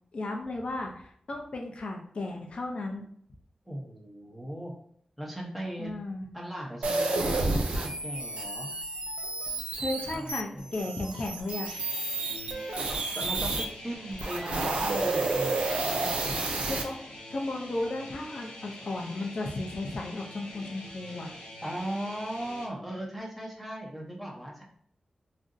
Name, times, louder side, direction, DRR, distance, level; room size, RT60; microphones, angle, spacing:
voice 1, 0.1-3.1 5.8-6.3 9.8-11.7 16.7-17.0 17.3-21.3, left 2 dB, 60° left, 1 dB, 0.5 m, -34 dB
voice 2, 3.7-4.7 5.2-5.9 6.3-8.7 10.0-10.8 13.1-16.4 21.6-24.6, right 1 dB, ahead, -2 dB, 0.8 m, -38 dB
sound 1, 6.8-13.7 14.1-16.8, right 2 dB, 80° right, 0.5 m, -30 dB
sound 2, 11.7-22.7, left 1 dB, 90° left, 0.8 m, -45 dB
2.6 x 2.1 x 3.7 m, 0.64 s
wide cardioid pair, 80°, 2 cm